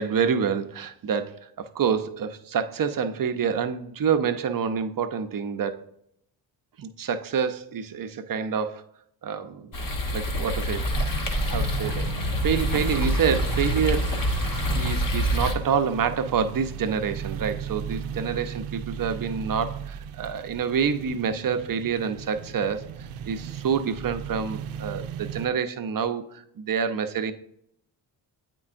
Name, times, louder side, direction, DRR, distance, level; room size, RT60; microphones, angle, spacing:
voice 1, 0.0-5.8 6.8-8.8 9.2-9.7 10.1-11.2 11.5-12.1 12.4-14.2 14.7-22.9 23.3-27.3, right 6 dB, 45° right, 9 dB, 0.7 m, -27 dB
sound 1, 9.7-15.5, equal, 40° left, 1.3 m, -26 dB
sound 2, 10.9-25.5, right 7 dB, 85° right, 0.6 m, -36 dB
8.4 x 4.5 x 2.5 m, 0.74 s
supercardioid pair, 60°, 49 cm